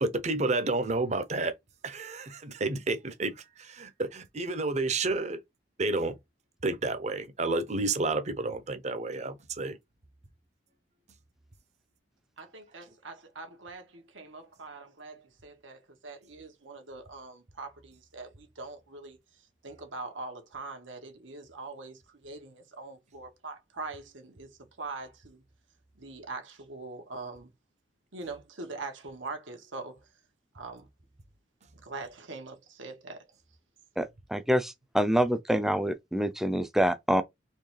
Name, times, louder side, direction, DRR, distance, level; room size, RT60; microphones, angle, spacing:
voice 1, 0.0-1.5 1.8-5.4 5.8-6.1 6.6-9.8, right 3 dB, 35° right, 0.7 m, -30 dB
voice 2, 12.4-19.2 19.6-25.4 26.0-27.5 28.1-30.1 30.5-30.9 31.7-33.2, right 3 dB, 90° right, 1.5 m, -43 dB
voice 3, 34.0-37.2, equal, ahead, 0.5 m, -26 dB
4.4 x 3.2 x 3.2 m
head